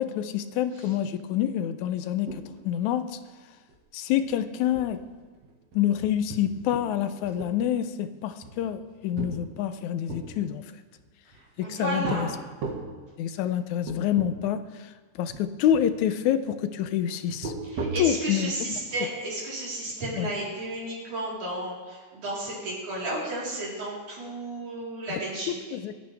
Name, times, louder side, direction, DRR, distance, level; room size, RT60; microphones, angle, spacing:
voice 1, 0.0-3.2 3.9-5.1 5.8-10.7 11.6-12.3 13.2-14.9 15.2-17.5 18.0-18.5 20.2-20.3 25.1-25.2 25.5-25.9, left 10 dB, 80° left, 11 dB, 2.0 m, -27 dB
sound 1, 2.3-2.8 3.0-3.2 3.5-3.8 4.2-4.4 4.7-6.9 7.2-7.9 8.4-10.3 11.0-11.6 12.0-12.2 12.6-12.9 13.5-13.6 13.9-14.3 14.6-14.7 15.3-15.9 17.3-18.2, right 4 dB, 60° right, 2.9 m, -36 dB
voice 2, 11.3-12.3 17.7-25.6, right 1 dB, 85° right, -6 dB, 5.7 m, -33 dB
26.5 x 9.0 x 3.5 m, 1.4 s
omnidirectional pair, 3.4 m